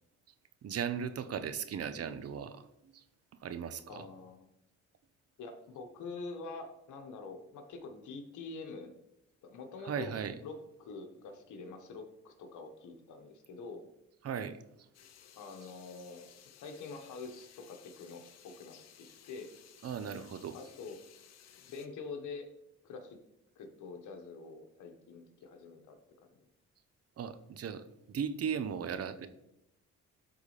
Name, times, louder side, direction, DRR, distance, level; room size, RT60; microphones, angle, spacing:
voice 1, 0.6-2.7 2.9-3.0 3.4-4.1 9.8-10.4 14.2-14.6 19.8-20.6 27.2-29.3, right 7 dB, 55° right, 11 dB, 0.7 m, -37 dB
voice 2, 3.9-4.5 5.4-8.9 9.4-10.1 10.4-13.9 15.4-16.2 16.5-19.5 20.5-21.0 21.6-22.5 22.8-23.2 23.5-26.4, left 4 dB, 75° left, 5 dB, 1.4 m, -46 dB
sound 1, 14.9-21.9, left 9 dB, 60° left, 0.8 m, -58 dB
12.0 x 4.1 x 3.3 m, 0.84 s
cardioid pair, 90°, 30 cm